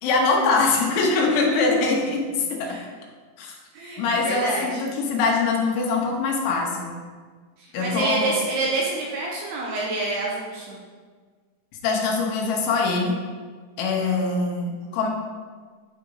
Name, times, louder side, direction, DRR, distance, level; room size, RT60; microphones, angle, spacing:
voice 1, 0.0-2.8 3.4-3.5 4.0-6.9 7.7-8.4 11.8-13.2 13.8-15.1, left 3 dB, 80° left, 0 dB, 3.3 m, -23 dB
voice 2, 3.7-4.8 7.6-10.8 14.0-14.5 14.8-15.0, right 2 dB, 75° right, -3 dB, 2.5 m, -28 dB
9.8 x 5.0 x 3.8 m, 1.5 s
omnidirectional pair, 5.4 m